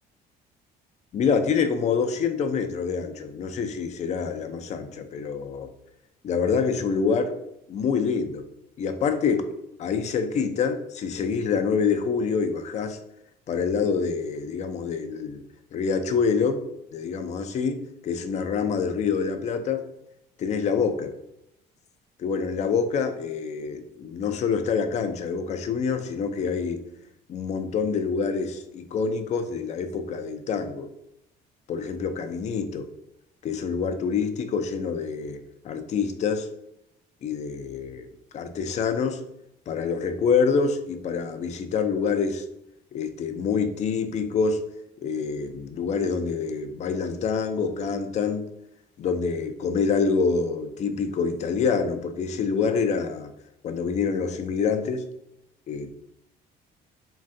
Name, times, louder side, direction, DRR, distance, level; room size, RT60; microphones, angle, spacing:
voice 1, 1.1-5.7 6.2-7.4 7.7-8.5 8.8-9.5 9.8-13.0 13.5-15.4 15.7-16.6 16.9-19.9 20.4-21.1 22.2-26.8 27.3-30.9 31.7-32.9 33.4-36.5 37.2-38.1 38.3-39.2 39.7-42.4 42.9-44.6 45.0-48.5 49.0-53.3 53.6-55.1 55.7-55.9, left 5 dB, 45° left, 8 dB, 0.4 m, -26 dB
3.3 x 2.2 x 2.5 m, 0.84 s
cardioid pair, 110°, 17 cm